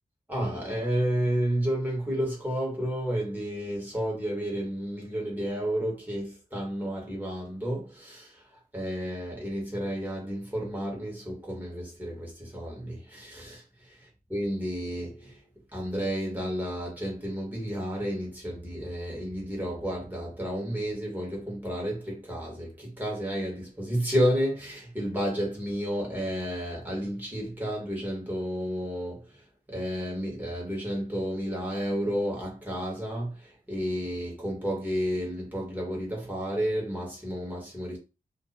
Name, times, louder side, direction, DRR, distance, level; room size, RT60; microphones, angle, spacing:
voice 1, 0.3-15.4 15.7-38.0, equal, 10° right, 1.4 m, -31 dB
2.7 x 2.5 x 4.1 m
wide cardioid pair, 135°, 15 cm